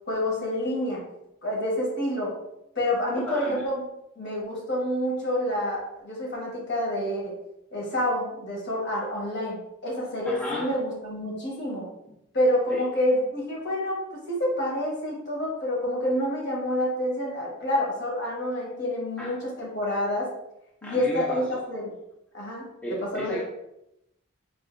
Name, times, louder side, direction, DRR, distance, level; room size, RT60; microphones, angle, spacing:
voice 1, 0.1-1.0 1.4-2.3 2.7-3.8 4.2-7.3 7.7-11.9 12.3-20.3 20.8-21.9 22.3-23.4, left 1 dB, 50° left, -3 dB, 1.2 m, -28 dB
voice 2, 3.3-3.6 10.3-10.7 12.7-12.8 19.2-19.3 20.8-21.6 22.8-23.4, equal, 5° left, -6 dB, 0.5 m, -33 dB
4.2 x 2.6 x 2.5 m, 0.85 s
head